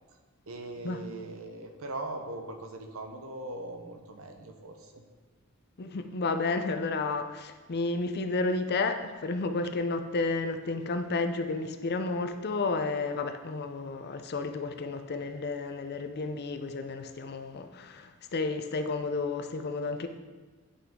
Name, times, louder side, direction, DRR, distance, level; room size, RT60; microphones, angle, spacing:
voice 1, 0.5-5.0, right 2 dB, 70° right, 1.0 m, -40 dB
voice 2, 5.8-20.1, left 3 dB, 50° left, 0.6 m, -31 dB
9.7 x 5.7 x 3.7 m
head